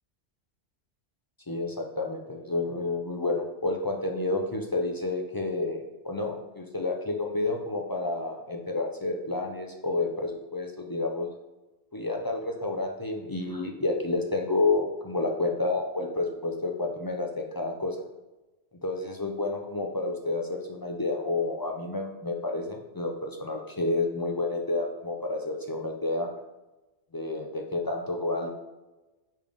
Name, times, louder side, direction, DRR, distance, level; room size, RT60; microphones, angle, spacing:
voice 1, 1.5-11.3 11.9-18.0 18.8-26.3 27.1-28.5, left 2 dB, 35° left, 2 dB, 0.4 m, -30 dB
5.3 x 3.5 x 5.0 m, 1.1 s
omnidirectional pair, 1.2 m